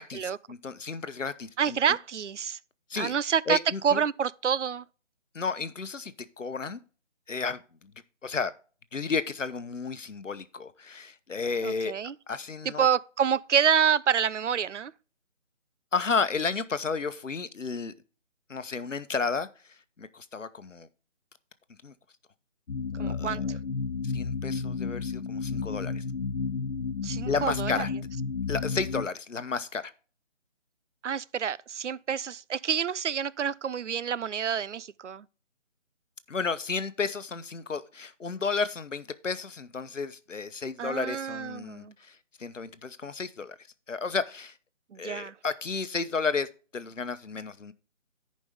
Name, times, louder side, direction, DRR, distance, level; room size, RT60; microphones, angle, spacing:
voice 1, 0.0-1.8 2.9-3.1 3.5-4.0 5.3-6.8 7.3-7.6 8.2-8.5 8.9-11.9 12.3-12.9 15.9-17.9 18.5-19.5 20.0-20.9 21.8-21.9 23.0-23.6 24.0-26.0 27.3-27.9 28.5-29.9 36.3-43.6 43.9-44.5 45.0-47.7, left 4 dB, 70° left, 1.0 m, -32 dB
voice 2, 1.6-2.6 3.0-3.6 3.8-4.8 11.6-12.2 12.8-14.9 23.0-23.6 27.0-27.8 31.0-35.3 40.8-41.9 44.9-45.3, right 8 dB, 65° right, 0.5 m, -28 dB
sound 1, 22.7-29.1, left 5 dB, 55° left, 0.5 m, -32 dB
14.0 x 5.3 x 3.5 m
figure-of-eight pair, 160°, 39 cm